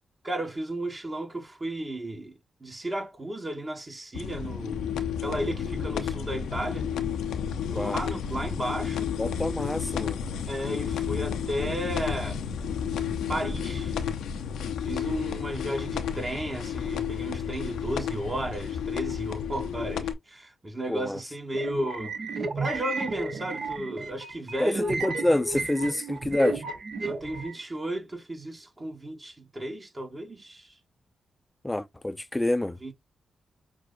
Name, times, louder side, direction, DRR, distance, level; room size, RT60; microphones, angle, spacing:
voice 1, 0.2-4.8 5.2-6.9 7.7-9.1 10.5-12.4 13.3-14.0 14.8-22.1 22.6-25.0 27.0-30.7 32.8-32.9, right 1 dB, 35° right, 1.3 m, -34 dB
sound 1, 4.1-20.1, left 7 dB, 85° left, 0.5 m, -31 dB
voice 2, 9.2-10.2 20.9-21.2 24.6-24.7 25.0-26.6 31.6-32.9, left 1 dB, 15° left, 0.5 m, -27 dB
sound 2, 21.5-27.6, right 2 dB, 65° right, 0.9 m, -33 dB
6.0 x 2.1 x 2.5 m
supercardioid pair, 45°, 0 cm